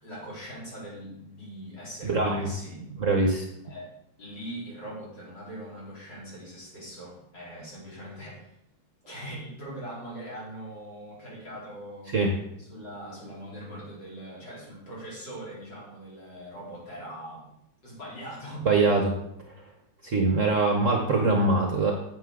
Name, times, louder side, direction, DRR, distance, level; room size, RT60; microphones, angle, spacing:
voice 1, 0.0-2.8 3.6-3.9 4.2-8.5 9.1-12.2 12.6-17.5 17.8-18.7, right 1 dB, 60° left, -7 dB, 4.5 m, -41 dB
voice 2, 2.0-2.5 3.0-3.4 12.1-12.3 18.7-19.1 20.0-21.9, right 3 dB, 50° right, 2 dB, 1.0 m, -23 dB
9.3 x 7.6 x 3.7 m, 0.79 s
omnidirectional pair, 2.2 m